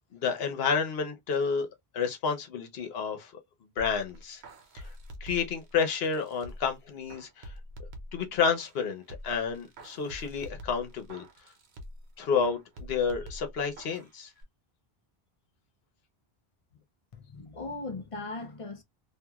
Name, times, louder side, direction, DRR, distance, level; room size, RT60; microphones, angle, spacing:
voice 1, 0.1-1.7 1.9-3.3 3.8-4.4 4.7-4.9 5.2-7.5 8.1-11.2 12.2-14.3, left 6 dB, 70° left, 1.0 m, -30 dB
sound 1, 3.8-6.8 7.1-8.8 9.1-12.1 12.4-14.1 14.4-14.5, equal, 85° right, 1.0 m, -46 dB
voice 2, 17.1-18.8, left 3 dB, 45° left, 0.5 m, -38 dB
2.9 x 2.6 x 2.3 m
omnidirectional pair, 1.1 m